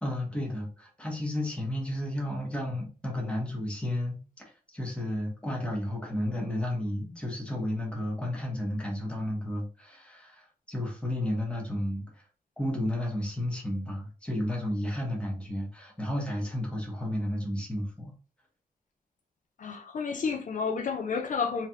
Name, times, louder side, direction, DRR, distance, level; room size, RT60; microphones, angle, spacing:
voice 1, 0.0-4.2 4.7-12.2 12.6-18.1, left 1 dB, 5° left, 1.2 m, -32 dB
voice 2, 19.6-21.7, left 5 dB, 60° left, 0.5 m, -31 dB
3.2 x 2.9 x 3.6 m
wide cardioid pair, 175°, 15 cm